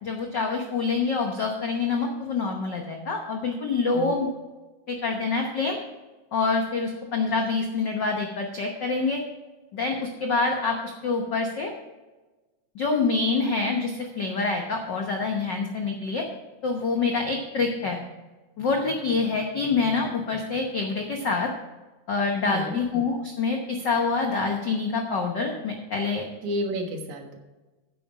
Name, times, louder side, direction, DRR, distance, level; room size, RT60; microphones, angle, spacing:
voice 1, 0.0-4.3 4.9-5.8 6.3-9.2 9.7-11.7 12.7-16.2 16.6-18.0 18.6-21.5 22.1-26.3, left 4 dB, 75° left, 2 dB, 1.0 m, -26 dB
voice 2, 22.4-22.8 26.4-27.4, equal, 75° right, 3 dB, 2.7 m, -30 dB
9.8 x 7.8 x 4.8 m, 1.2 s
omnidirectional pair, 3.5 m